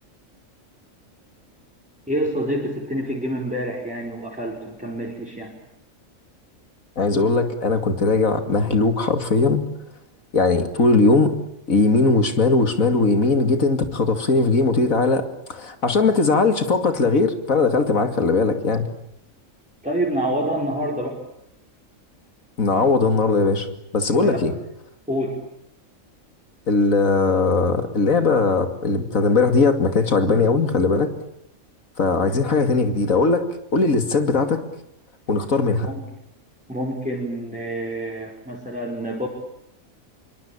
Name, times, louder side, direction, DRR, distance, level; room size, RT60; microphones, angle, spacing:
voice 1, 2.1-5.5 19.8-21.2 24.1-24.4 25.1-25.4 35.8-36.0 36.7-39.3, right 1 dB, 5° right, -2 dB, 5.1 m, -27 dB
voice 2, 7.0-9.7 10.3-11.3 11.7-18.9 22.6-23.7 23.9-24.5 26.7-31.1 32.0-33.4 33.7-34.6 35.3-35.9, left 3 dB, 80° left, 8 dB, 2.9 m, -19 dB
27.0 x 24.0 x 8.7 m, 0.79 s
omnidirectional pair, 1.4 m